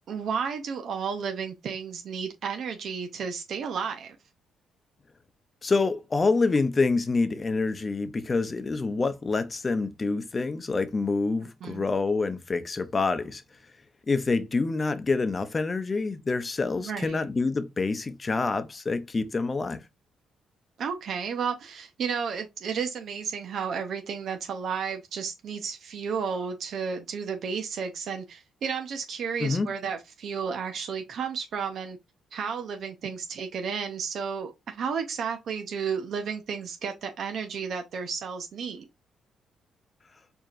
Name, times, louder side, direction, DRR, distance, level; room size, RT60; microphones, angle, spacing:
voice 1, 0.1-4.2 11.4-11.9 16.8-17.3 20.8-32.0 32.3-38.9, right 6 dB, 65° right, 0.6 m, -32 dB
voice 2, 5.6-13.4 14.1-19.8 29.4-29.7, left 3 dB, 30° left, 0.6 m, -27 dB
4.6 x 2.8 x 2.5 m
cardioid pair, 90°, 0 cm